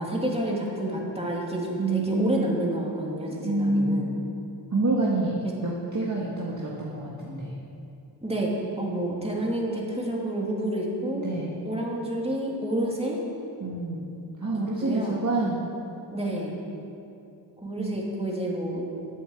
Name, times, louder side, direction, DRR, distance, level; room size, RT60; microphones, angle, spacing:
voice 1, 0.0-4.1 8.2-8.5 8.8-11.3 11.6-13.2 14.8-15.2 16.1-16.5 17.6-18.9, right 1 dB, 15° right, -3 dB, 2.8 m, -29 dB
voice 2, 1.8-2.5 3.4-4.1 4.7-7.5 11.2-11.6 13.6-14.1 14.4-15.6 17.8-18.3, right 2 dB, 40° right, -5 dB, 1.8 m, -27 dB
10.0 x 7.8 x 7.2 m, 2.7 s
cardioid pair, 45°, 45 cm